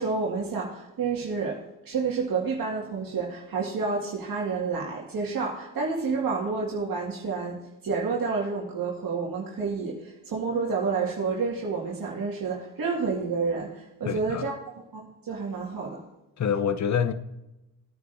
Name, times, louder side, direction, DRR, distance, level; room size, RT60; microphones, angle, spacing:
voice 1, 0.0-16.0, right 4 dB, 50° right, 2.2 m, -29 dB
voice 2, 14.0-14.5 16.4-17.1, left 7 dB, 40° left, 0.9 m, -26 dB
19.5 x 9.3 x 2.7 m
hypercardioid pair, 55°, 43 cm